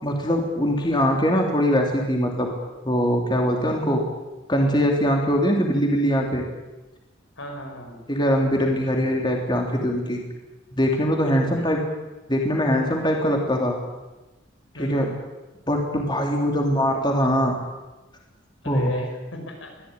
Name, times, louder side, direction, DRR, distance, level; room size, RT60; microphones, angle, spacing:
voice 1, 0.0-2.5 2.8-4.0 4.5-6.4 8.1-10.2 10.7-11.8 12.3-13.7 14.8-15.1 15.7-17.6 18.6-18.9, equal, 25° left, 1 dB, 3.4 m, -22 dB
voice 2, 7.4-8.0 11.2-11.6 13.3-13.4 14.7-15.1 18.6-19.7, left 1 dB, 80° left, 4 dB, 6.0 m, -35 dB
23.5 x 16.0 x 9.9 m, 1.1 s
head